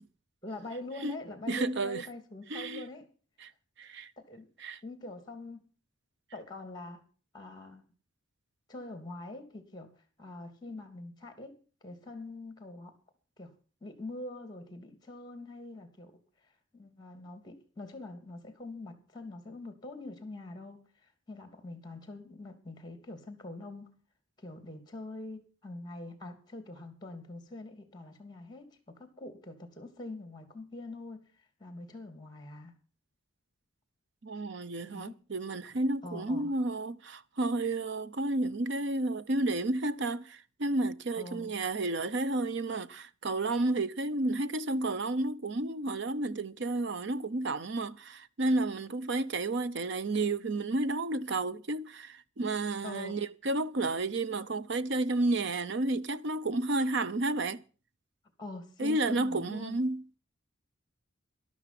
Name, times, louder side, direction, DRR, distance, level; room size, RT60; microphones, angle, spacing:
voice 1, 0.4-3.1 4.3-4.5 4.8-5.6 6.3-7.0 7.3-7.8 8.7-9.9 10.2-13.0 13.4-13.5 13.8-16.2 16.7-24.0 24.4-31.3 31.6-32.7 34.9-35.2 36.0-36.5 41.2-41.5 52.8-53.2 58.4-59.8, left 2 dB, 20° left, 2.9 m, -44 dB
voice 2, 1.5-2.1 2.5-2.8 3.4-3.5 3.8-4.1 4.6-4.8 34.2-57.6 58.8-60.0, right 2 dB, 60° right, 0.7 m, -31 dB
13.0 x 12.0 x 6.0 m
head